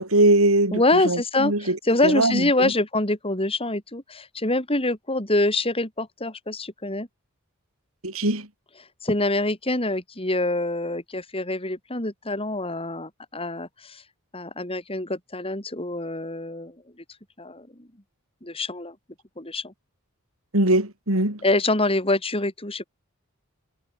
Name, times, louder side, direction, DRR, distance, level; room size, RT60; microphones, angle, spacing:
voice 1, 0.0-1.8 2.0-2.7 8.0-8.5 20.5-21.4, right 1 dB, 70° right, 6.6 m, -21 dB
voice 2, 0.7-7.1 9.0-14.0 14.3-16.7 17.4-17.9 18.4-18.9 19.4-19.7 21.4-22.8, left 2 dB, 25° left, 5.0 m, -25 dB
head